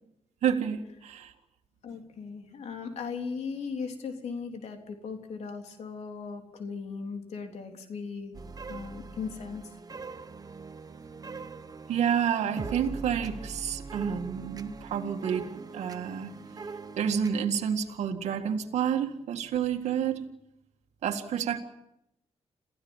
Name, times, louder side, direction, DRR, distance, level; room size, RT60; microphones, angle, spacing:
voice 1, 0.4-1.3 11.9-16.3 17.0-20.2 21.0-21.6, right 8 dB, 85° right, 4 dB, 2.0 m, -29 dB
voice 2, 1.8-8.4 8.7-9.6, left 5 dB, 75° left, 4 dB, 3.5 m, -38 dB
sound 1, 8.3-17.4, right 4 dB, 35° right, 1.2 m, -42 dB
28.0 x 15.5 x 7.3 m, 0.82 s
cardioid pair, 85°, 11 cm